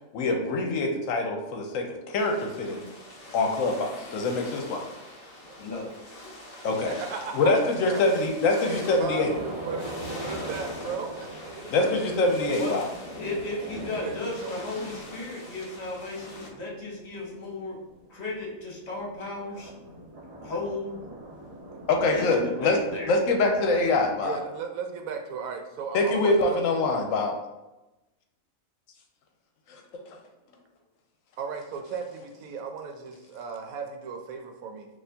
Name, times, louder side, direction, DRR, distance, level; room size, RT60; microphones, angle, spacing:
voice 1, 0.1-2.8 3.3-4.9 6.6-6.9 7.3-9.3 11.7-12.9 21.9-22.8 23.1-24.4 25.9-27.4 29.7-29.8 30.1-30.2, left 2 dB, 75° left, 3 dB, 1.0 m, -24 dB
sound 1, 2.2-16.5, left 1 dB, 40° left, 0.5 m, -44 dB
voice 2, 5.6-5.9 12.6-17.8 18.1-19.7 20.4-21.1 22.1-23.1, left 2 dB, 55° left, -3 dB, 1.1 m, -35 dB
voice 3, 6.9-8.0 8.6-12.1 13.7-14.5 24.2-26.9 31.4-34.9, right 5 dB, 90° right, 4 dB, 1.0 m, -36 dB
sound 2, 9.0-24.2, right 1 dB, 60° right, 1.1 m, -42 dB
4.2 x 2.6 x 2.7 m, 1.0 s
omnidirectional pair, 1.4 m